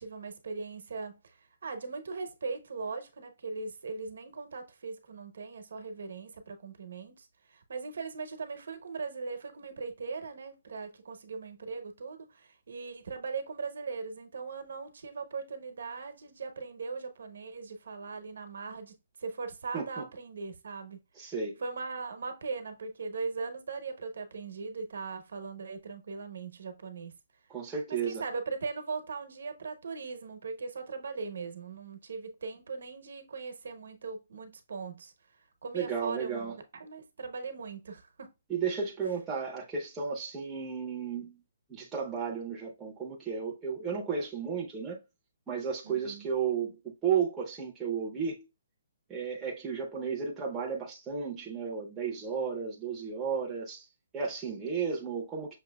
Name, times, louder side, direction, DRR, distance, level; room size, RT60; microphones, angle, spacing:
voice 1, 0.0-1.4 1.6-21.3 21.6-27.1 28.0-35.1 35.6-36.5 36.8-38.3 45.8-46.3, right 4 dB, 65° right, 0.9 m, -39 dB
voice 2, 19.7-20.0 21.2-21.6 27.5-28.2 35.7-36.6 38.5-41.4 41.7-45.0 45.5-48.4 49.1-53.8 54.1-55.6, right 6 dB, 10° right, 0.7 m, -33 dB
6.1 x 2.7 x 2.2 m
hypercardioid pair, 175°, 0 cm